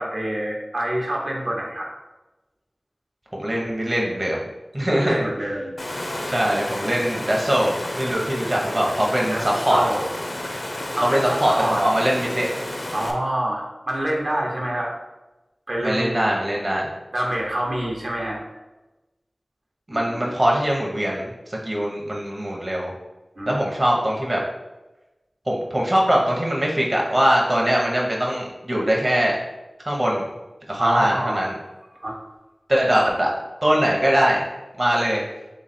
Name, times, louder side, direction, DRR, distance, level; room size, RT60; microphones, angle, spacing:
voice 1, 0.0-1.9 5.0-5.8 9.3-9.4 9.7-10.1 10.9-11.8 12.9-14.9 15.7-16.3 17.1-18.4 19.9-20.3 23.4-23.6 30.8-31.4 32.0-32.1, right 1 dB, 65° right, -2 dB, 0.9 m, -26 dB
voice 2, 3.3-4.4 4.7-5.2 6.3-9.8 11.0-12.6 15.8-16.8 19.9-22.9 23.5-24.4 25.5-29.4 29.8-30.2 30.7-31.5 32.7-33.3 33.6-34.4 34.8-35.2, equal, 35° right, -2 dB, 0.8 m, -22 dB
Water, 5.8-13.1, left 1 dB, 45° left, 0.6 m, -31 dB
3.4 x 3.2 x 4.1 m, 1.0 s
wide cardioid pair, 50°, 0 cm